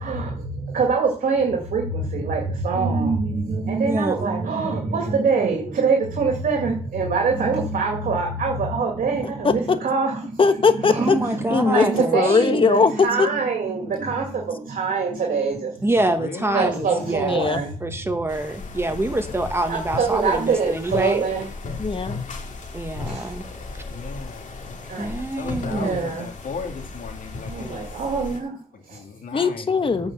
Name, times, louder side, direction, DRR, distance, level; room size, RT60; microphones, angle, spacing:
voice 1, 0.0-10.2 10.8-15.8 16.5-17.7 19.7-21.5 23.0-23.3 24.9-25.1 25.6-26.3 27.4-28.6 28.9-29.0 30.0-30.1, right 4 dB, 80° right, 1 dB, 2.4 m, -24 dB
voice 2, 3.8-4.3 10.9-12.4 15.8-21.2 22.7-23.4 23.7-23.8 25.0-26.1, right 1 dB, 15° right, 6 dB, 1.6 m, -26 dB
voice 3, 10.4-11.2 11.5-11.9 12.1-13.3 17.2-17.6 21.8-22.2 25.5-25.6 29.3-30.1, left 5 dB, 40° left, 10 dB, 1.1 m, -20 dB
voice 4, 11.1-12.0 13.8-14.4 15.9-17.4 18.8-19.5 23.8-24.4 25.2-27.9 28.7-29.7, left 5 dB, 80° left, 3 dB, 2.5 m, -36 dB
sound 1, 18.3-28.4, left 3 dB, 65° left, 2.2 m, -35 dB
9.1 x 5.2 x 7.4 m, 0.38 s
cardioid pair, 95°, 14 cm